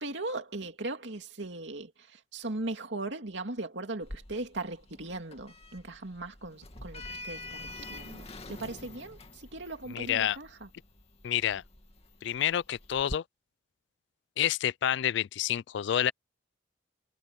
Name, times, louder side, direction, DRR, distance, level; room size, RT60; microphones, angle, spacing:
voice 1, 0.0-10.7, right 2 dB, 70° right, 2.7 m, -38 dB
Sliding door, 4.0-13.1, left 2 dB, 35° left, 2.3 m, -46 dB
voice 2, 9.9-10.4 11.2-11.6 12.2-13.2 14.4-16.1, left 10 dB, 65° left, 0.3 m, -28 dB
head